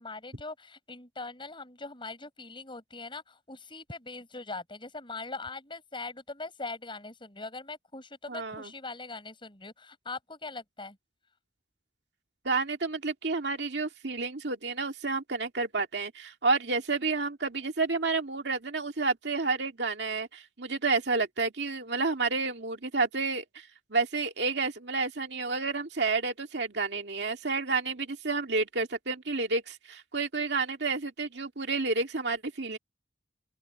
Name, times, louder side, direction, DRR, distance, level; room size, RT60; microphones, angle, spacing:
voice 1, 0.0-11.0, left 3 dB, 30° left, 6.8 m, -41 dB
voice 2, 8.3-8.7 12.4-32.8, right 3 dB, 75° right, 2.2 m, -30 dB
open air
head